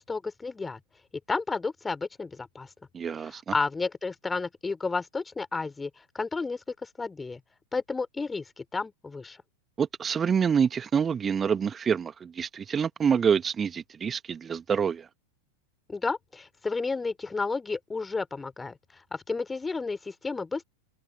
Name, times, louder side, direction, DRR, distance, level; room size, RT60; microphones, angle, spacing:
voice 1, 0.1-0.8 1.3-2.7 3.2-7.4 7.7-9.4 15.9-20.6, left 4 dB, 10° left, 3.4 m, -32 dB
voice 2, 2.9-3.5 9.8-15.1, right 7 dB, 20° right, 1.3 m, -26 dB
figure-of-eight pair, 90°, 0 cm